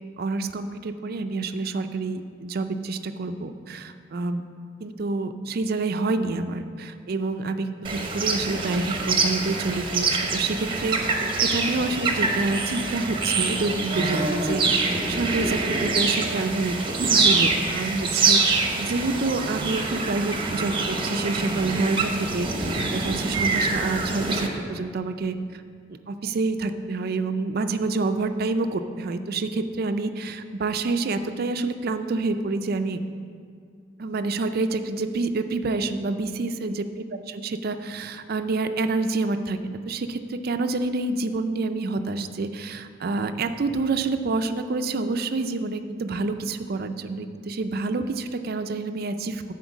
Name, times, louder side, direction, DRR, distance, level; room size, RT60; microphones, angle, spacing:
voice 1, 0.2-4.4 4.8-22.5 22.9-25.6 26.1-33.0 34.0-36.9 37.4-49.4, right 3 dB, 55° right, 8 dB, 0.4 m, -27 dB
sound 1, 7.8-24.5, right 3 dB, 25° right, 0.9 m, -25 dB
10.0 x 4.4 x 7.1 m, 2.2 s
head